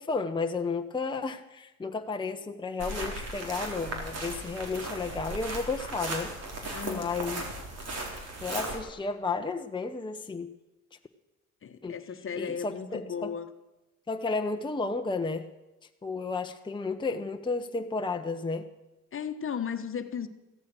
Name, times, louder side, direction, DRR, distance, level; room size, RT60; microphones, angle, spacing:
voice 1, 0.0-6.3 6.8-7.4 8.4-10.5 11.8-11.9 12.4-13.3 14.1-15.5 16.0-18.7, left 4 dB, 15° left, 5 dB, 0.9 m, -32 dB
sound 1, 2.8-8.8, right 2 dB, 55° right, 3.9 m, -37 dB
voice 2, 6.7-7.6 11.6-13.5 19.1-20.3, left 7 dB, 45° left, 9 dB, 1.2 m, -36 dB
15.5 x 14.0 x 6.2 m, 1.0 s
cardioid pair, 90°, 30 cm